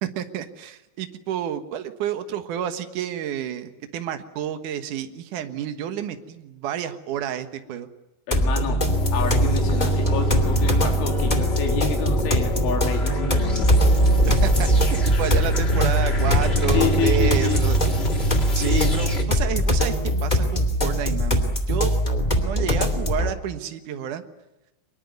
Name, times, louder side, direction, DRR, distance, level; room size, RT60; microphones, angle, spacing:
voice 1, 0.0-7.9 14.2-17.8 18.5-19.9 20.2-22.0 22.3-24.2, right 10 dB, 65° right, 8 dB, 2.1 m, -30 dB
voice 2, 8.3-8.9 9.1-13.7 16.7-17.6 18.6-19.0, left 6 dB, 85° left, 3 dB, 5.6 m, -28 dB
sound 1, 8.3-23.3, equal, 20° left, 1.1 m, -23 dB
sound 2, 8.9-19.2, right 1 dB, 50° left, 0.7 m, -24 dB
24.5 x 21.5 x 9.4 m, 0.95 s
omnidirectional pair, 5.4 m